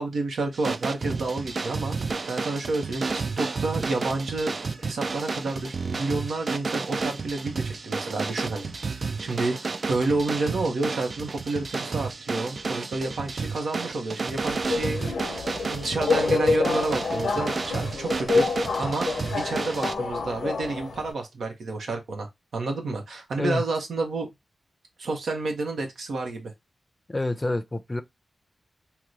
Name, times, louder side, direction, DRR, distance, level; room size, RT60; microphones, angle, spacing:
voice 1, 0.0-2.0 2.3-15.2 15.6-18.5 18.8-19.1 19.3-24.3 25.0-26.5, right 3 dB, 85° right, 0.9 m, -30 dB
sound 1, 0.5-19.9, right 4 dB, 60° right, 0.3 m, -31 dB
Subway metro underground, 14.3-21.1, left 3 dB, 90° left, 0.6 m, -27 dB
voice 2, 27.1-28.0, left 2 dB, 25° left, 0.5 m, -27 dB
3.0 x 2.2 x 3.7 m
cardioid pair, 55°, 0 cm